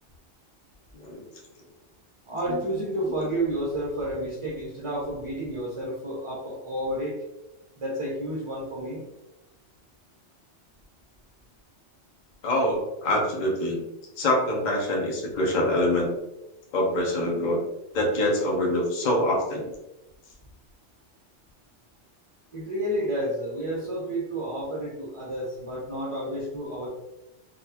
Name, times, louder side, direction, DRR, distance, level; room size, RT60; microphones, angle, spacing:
voice 1, 0.9-1.2 2.5-2.6 12.4-13.8 14.2-16.1 16.7-17.6 17.9-19.7, left 1 dB, 45° left, -1 dB, 0.8 m, -25 dB
voice 2, 2.3-7.2 7.8-9.0 22.5-26.9, right 1 dB, 30° right, -4 dB, 0.6 m, -30 dB
3.9 x 2.3 x 2.8 m, 0.94 s
omnidirectional pair, 1.2 m